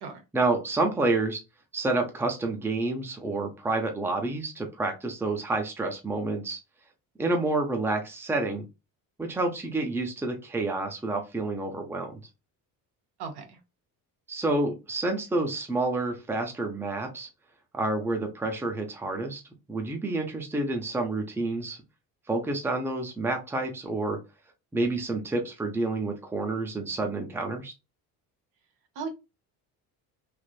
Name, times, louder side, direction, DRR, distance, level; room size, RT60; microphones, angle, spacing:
voice 1, 0.3-1.4 1.7-6.6 7.2-8.6 9.2-12.2 14.3-17.3 17.7-19.4 19.7-21.8 22.3-24.2 24.7-27.7, right 2 dB, 5° right, 4 dB, 0.6 m, -29 dB
voice 2, 13.2-13.6 29.0-29.1, right 5 dB, 70° right, 5 dB, 1.0 m, -36 dB
3.3 x 2.4 x 2.3 m, 0.25 s
cardioid pair, 115°, 39 cm